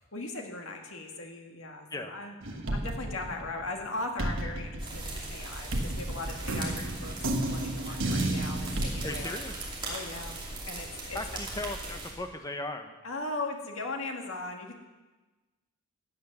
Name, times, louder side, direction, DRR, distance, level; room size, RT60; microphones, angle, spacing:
voice 1, 0.1-2.3 2.7-7.2 7.5-9.4 9.8-10.4 10.6-11.2 13.0-14.8, left 2 dB, 65° left, 2 dB, 2.0 m, -38 dB
sound 1, 2.4-3.8 4.2-9.3, right 1 dB, 60° right, 1.3 m, -32 dB
sound 2, 4.8-12.1, right 2 dB, 20° right, 2.6 m, -39 dB
voice 2, 9.0-9.6 11.1-13.0, left 2 dB, 15° left, 6 dB, 0.9 m, -37 dB
15.5 x 8.6 x 6.7 m, 1.2 s
head